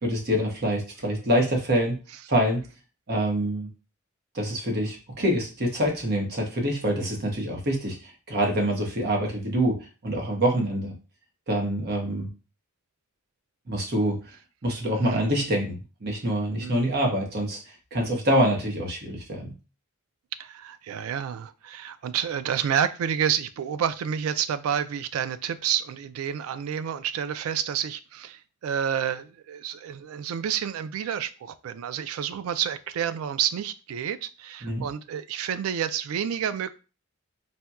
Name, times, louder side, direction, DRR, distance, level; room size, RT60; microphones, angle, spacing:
voice 1, 0.0-1.9 2.3-2.6 3.1-3.7 4.3-10.9 11.5-12.3 13.7-14.2 14.6-17.6 17.9-19.5 34.6-34.8, equal, 50° right, 0.9 m, -25 dB
voice 2, 15.0-15.5 16.6-16.9 20.4-36.7, right 9 dB, 80° right, 0.3 m, -29 dB
4.1 x 2.2 x 2.3 m
head